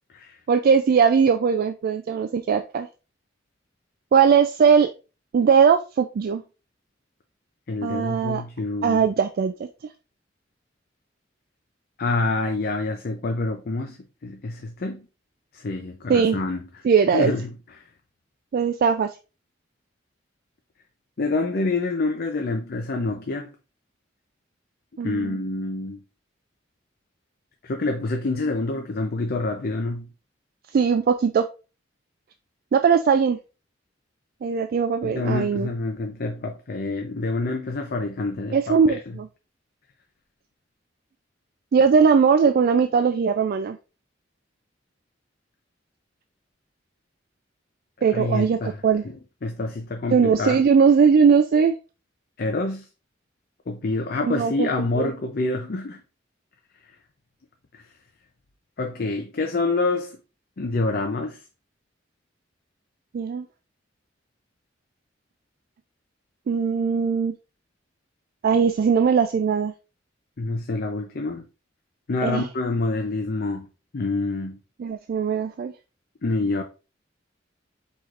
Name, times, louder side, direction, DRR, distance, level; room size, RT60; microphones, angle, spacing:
voice 1, 0.5-2.9 4.1-4.9 5.3-6.4 7.8-8.4 8.8-9.7 16.1-16.4 16.8-17.3 18.5-19.1 25.0-25.4 30.7-31.4 32.7-33.4 34.4-35.7 38.5-39.3 41.7-43.8 48.0-49.0 50.1-51.7 54.2-54.7 55.0-55.1 63.1-63.5 66.5-67.3 68.4-69.7 72.2-72.4 74.8-75.7, right 6 dB, 50° right, 0.3 m, -20 dB
voice 2, 7.7-9.1 12.0-15.1 15.5-16.6 17.1-17.5 21.2-23.5 25.0-26.0 27.6-30.1 35.0-39.2 48.1-50.6 52.4-52.9 53.7-56.0 57.7-57.9 58.8-60.2 60.6-61.4 70.4-71.5 72.1-73.7 73.9-74.6 76.2-76.6, left 3 dB, 55° left, 0.6 m, -27 dB
4.7 x 4.2 x 2.4 m
head